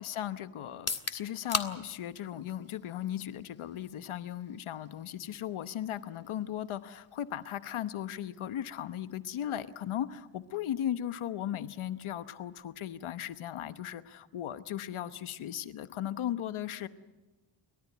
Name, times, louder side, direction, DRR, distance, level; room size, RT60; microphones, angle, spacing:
voice 1, 0.0-16.9, left 11 dB, 85° left, 13 dB, 1.1 m, -37 dB
sound 1, 0.7-14.6, left 4 dB, 30° left, 1.8 m, -45 dB
30.0 x 13.0 x 9.2 m, 1.2 s
cardioid pair, 70°, 48 cm